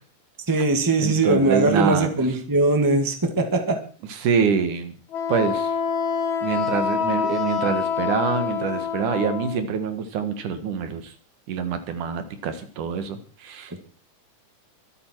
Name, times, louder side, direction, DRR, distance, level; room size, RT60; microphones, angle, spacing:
voice 1, 0.5-3.8, right 2 dB, 10° right, 4 dB, 1.5 m, -21 dB
voice 2, 1.0-2.1 4.1-4.9 5.3-5.7 6.4-11.1 11.5-13.8, right 6 dB, 75° right, 9 dB, 3.0 m, -25 dB
Wind instrument woodwind instrument, 5.1-9.6, left 7 dB, 65° left, 2.8 m, -26 dB
24.0 x 8.8 x 4.6 m, 0.41 s
omnidirectional pair, 3.6 m